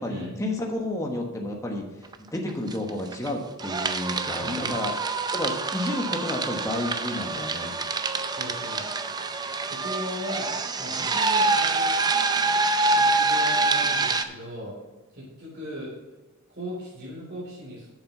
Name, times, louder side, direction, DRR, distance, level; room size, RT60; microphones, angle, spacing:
voice 1, 0.0-1.9 2.3-4.9 5.3-7.7, left 1 dB, 15° left, 0 dB, 1.2 m, -31 dB
sound 1, 2.1-2.2 2.5-3.3 3.6-14.2, right 3 dB, 20° right, 0.5 m, -26 dB
voice 2, 4.4-4.8 8.3-8.9 9.1-9.2 9.6-10.5 10.8-12.0 12.9-14.7 15.1-15.9 16.5-17.9, equal, 50° right, -6 dB, 3.5 m, -37 dB
7.5 x 7.2 x 5.4 m, 1.2 s
head